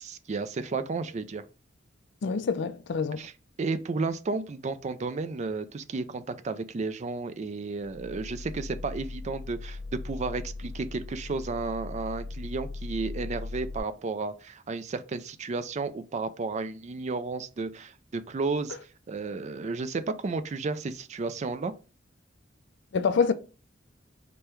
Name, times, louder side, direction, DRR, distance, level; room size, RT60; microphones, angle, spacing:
voice 1, 0.0-1.4 3.2-3.3 3.6-18.8 19.1-21.7, right 3 dB, 40° right, 0.4 m, -33 dB
voice 2, 2.2-3.3 22.9-23.3, left 5 dB, 65° left, 0.4 m, -26 dB
sound 1, 7.8-13.8, left 3 dB, 90° right, 1.0 m, -39 dB
5.1 x 2.2 x 4.4 m
head